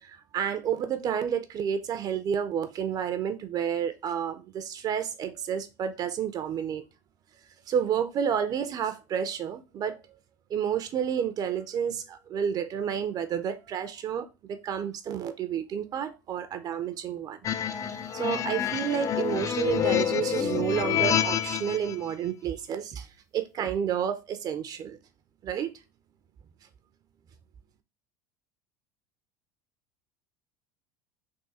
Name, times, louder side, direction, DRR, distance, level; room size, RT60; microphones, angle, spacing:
voice 1, 0.0-6.9 7.7-10.0 10.5-17.4 17.8-23.1 23.3-25.0 25.4-25.7, right 8 dB, 40° right, 0.5 m, -30 dB
sound 1, 17.4-21.9, left 9 dB, 30° left, 0.4 m, -28 dB
3.6 x 2.5 x 4.1 m
supercardioid pair, 110°, 10 cm